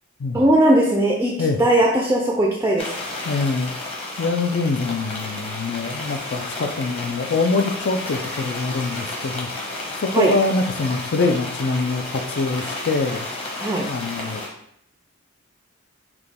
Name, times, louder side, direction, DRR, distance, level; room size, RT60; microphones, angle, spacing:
voice 1, 0.3-1.3 1.6-2.9 10.1-10.3 13.6-13.9, right 1 dB, 10° right, -1 dB, 0.4 m, -18 dB
sound 1, 2.8-14.5, left 2 dB, 30° left, 1.0 m, -32 dB
voice 2, 3.2-3.7 4.2-9.5 10.0-13.3 13.9-14.4, left 3 dB, 55° left, 7 dB, 0.4 m, -24 dB
5.9 x 2.3 x 3.4 m, 0.71 s
head